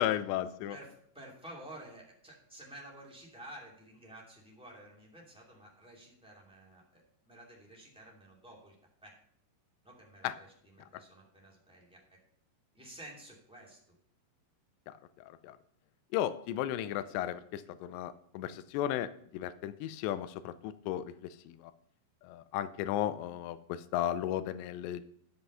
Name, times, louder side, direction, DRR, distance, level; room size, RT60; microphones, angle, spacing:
voice 1, 0.0-0.8 10.2-10.3 14.9-15.6 16.1-21.7 22.2-25.0, left 12 dB, 85° left, 13 dB, 2.8 m, -35 dB
voice 2, 0.7-8.7 9.0-9.1 9.8-12.0 12.7-14.0, right 1 dB, ahead, -4 dB, 1.5 m, -52 dB
13.5 x 5.6 x 5.5 m, 0.65 s
omnidirectional pair, 5.0 m